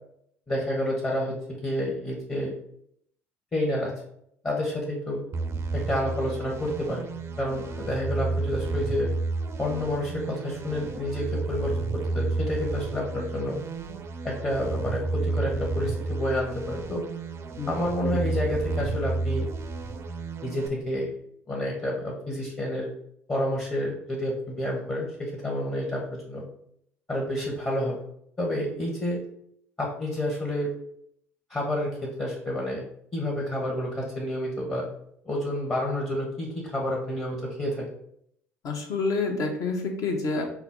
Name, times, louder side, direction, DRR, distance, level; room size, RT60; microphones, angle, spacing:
voice 1, 0.5-2.5 3.5-3.9 4.4-5.2 5.7-7.1 7.4-9.1 9.6-13.6 14.2-17.0 17.7-19.5 20.4-21.1 21.5-22.9 23.3-26.4 27.1-28.0 28.4-29.2 29.8-30.7 31.5-32.8 33.1-34.9 35.2-37.9, left 1 dB, 25° left, -2 dB, 1.0 m, -29 dB
sound 1, 5.3-20.7, right 3 dB, 35° right, 0.5 m, -31 dB
voice 2, 17.6-18.2 38.6-40.6, left 3 dB, 50° left, 2 dB, 0.9 m, -29 dB
4.5 x 2.0 x 3.7 m, 0.71 s
figure-of-eight pair, 55°, 7 cm